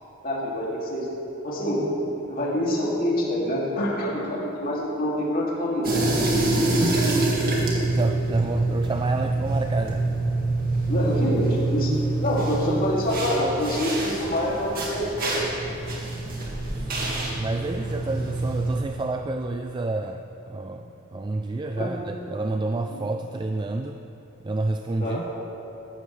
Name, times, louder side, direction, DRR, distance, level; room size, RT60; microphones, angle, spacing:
voice 1, 0.2-1.1 1.4-1.9 2.2-5.9 10.9-11.9 12.2-15.5 21.8-21.9 22.9-23.0 25.0-25.2, equal, 45° left, -5 dB, 2.5 m, -26 dB
sound 1, 5.8-18.8, right 2 dB, 45° right, 2.0 m, -26 dB
voice 2, 6.8-7.1 7.9-10.1 16.0-16.2 16.5-17.0 17.3-24.0 24.4-25.3, right 2 dB, 20° right, 5 dB, 0.3 m, -29 dB
14.5 x 12.0 x 3.3 m, 2.9 s
head